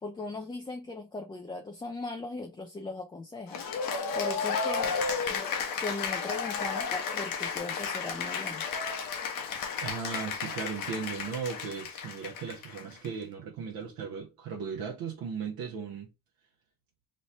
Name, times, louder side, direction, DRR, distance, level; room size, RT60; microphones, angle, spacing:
voice 1, 0.0-3.6 4.1-5.0 5.3-5.4 5.8-8.6, left 2 dB, 15° left, 0.4 m, -38 dB
Cheering / Applause, 3.5-13.1, left 5 dB, 65° left, 0.9 m, -33 dB
voice 2, 9.8-16.1, right 6 dB, 75° right, 0.9 m, -37 dB
3.2 x 2.1 x 4.0 m
cardioid pair, 95°, 37 cm